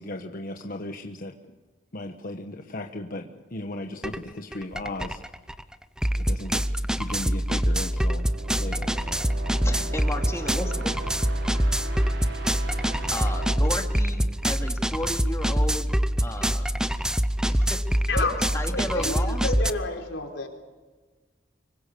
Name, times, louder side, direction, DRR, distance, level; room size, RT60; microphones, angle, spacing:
voice 1, 0.0-1.3 1.9-5.2 6.2-6.6 6.9-8.3 8.6-8.9, left 1 dB, 50° left, 3 dB, 1.3 m, -36 dB
sound 1, 4.0-4.2 4.5-19.7, equal, 5° right, 0.7 m, -25 dB
sound 2, 7.5-15.2, right 3 dB, 85° right, 5.8 m, -40 dB
voice 2, 9.6-11.1 11.4-11.6 13.1-15.9 16.2-16.7 17.5-17.8 18.5-19.5, left 1 dB, 15° left, 3 dB, 2.6 m, -34 dB
voice 3, 18.1-20.5, left 3 dB, 85° left, 3 dB, 4.3 m, -30 dB
25.5 x 23.5 x 7.0 m, 1.3 s
head